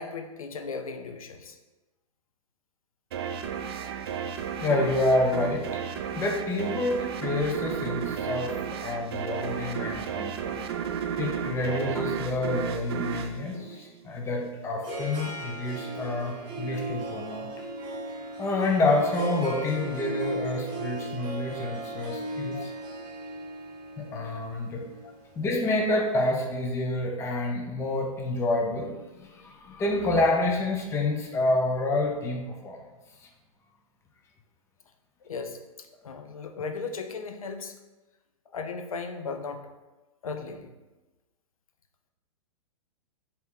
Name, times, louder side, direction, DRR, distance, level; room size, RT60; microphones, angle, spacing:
voice 1, 0.0-1.6 22.5-22.7 25.0-25.2 35.2-35.6 36.0-37.7 38.5-39.7 40.2-40.7, left 4 dB, 70° left, 6 dB, 0.5 m, -36 dB
sound 1, 3.1-14.4, right 7 dB, 45° right, 0.4 m, -33 dB
voice 2, 4.6-5.7 6.2-10.6 11.2-17.5 18.4-22.7 24.0-24.8 25.4-32.8, left 2 dB, 15° left, 1 dB, 0.5 m, -28 dB
Harp, 14.2-26.3, right 1 dB, 25° right, 1.0 m, -37 dB
4.2 x 2.8 x 3.5 m, 1.1 s
figure-of-eight pair, 110°, 19 cm